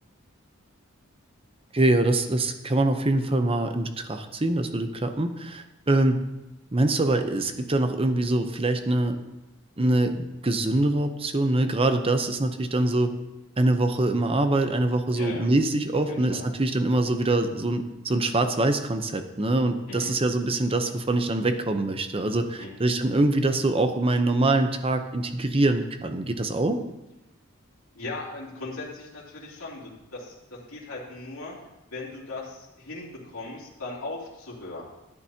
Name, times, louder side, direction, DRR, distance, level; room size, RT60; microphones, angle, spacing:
voice 1, 1.7-6.2 6.7-9.2 9.8-13.1 13.6-26.8, right 2 dB, 25° right, 7 dB, 0.8 m, -24 dB
voice 2, 15.1-15.5 16.1-16.4 19.9-20.1 22.6-22.7 27.9-31.6 31.9-34.8, left 2 dB, 80° left, -6 dB, 2.9 m, -38 dB
13.5 x 10.5 x 2.9 m, 0.96 s
head